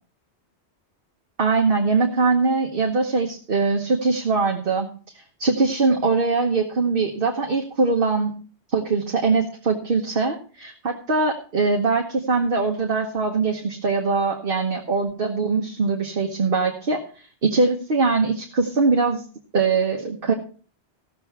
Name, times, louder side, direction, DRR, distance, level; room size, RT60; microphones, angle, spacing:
voice 1, 1.4-4.9 5.1-8.3 8.7-17.0 17.4-19.2 19.5-20.3, right 4 dB, 55° right, 1 dB, 1.3 m, -22 dB
15.5 x 6.8 x 4.6 m, 0.40 s
omnidirectional pair, 1.1 m